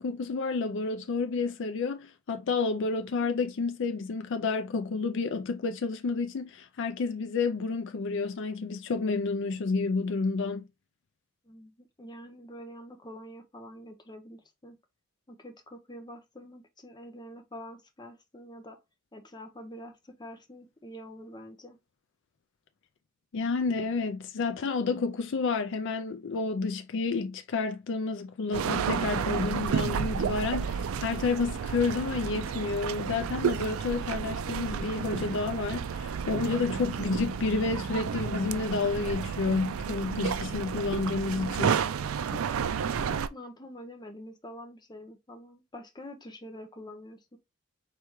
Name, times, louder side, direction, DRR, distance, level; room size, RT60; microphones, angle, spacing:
voice 1, 0.0-10.7 23.3-41.9, left 4 dB, 60° left, 0.4 m, -30 dB
voice 2, 11.4-14.8 15.3-18.8 19.1-21.8 42.3-42.6 43.3-47.4, equal, 20° left, 0.8 m, -46 dB
sound 1, 28.5-43.3, right 7 dB, 75° right, 0.4 m, -31 dB
4.6 x 3.4 x 3.0 m
head